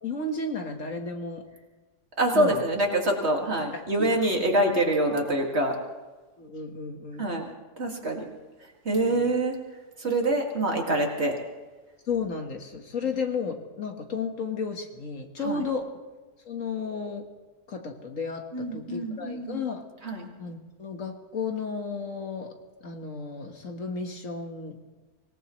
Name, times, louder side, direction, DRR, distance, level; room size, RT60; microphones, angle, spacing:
voice 1, 0.0-1.4 2.3-2.6 3.7-4.1 4.5-4.6 6.4-7.3 9.0-9.3 12.1-15.9 16.5-17.3 17.7-19.8 20.4-22.5 22.8-24.8, left 4 dB, 55° left, 4 dB, 1.8 m, -33 dB
voice 2, 2.2-5.7 7.2-7.4 7.8-8.3 8.8-9.6 10.0-11.3 15.4-15.6 18.5-19.6 20.0-20.3, right 1 dB, 40° right, 1 dB, 2.4 m, -25 dB
25.0 x 18.0 x 3.1 m, 1.3 s
omnidirectional pair, 1.7 m